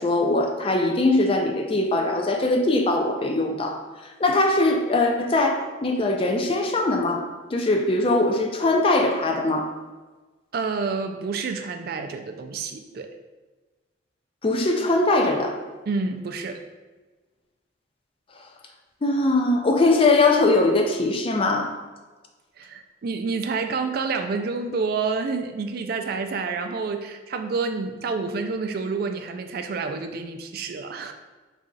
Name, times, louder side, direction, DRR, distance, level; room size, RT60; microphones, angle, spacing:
voice 1, 0.0-7.2 7.5-9.7 14.4-15.6 19.0-21.8, left 2 dB, 30° left, 3 dB, 0.4 m, -21 dB
voice 2, 10.5-13.1 15.9-16.6 22.6-31.1, right 4 dB, 50° right, 6 dB, 0.3 m, -28 dB
4.1 x 2.4 x 3.8 m, 1.3 s
head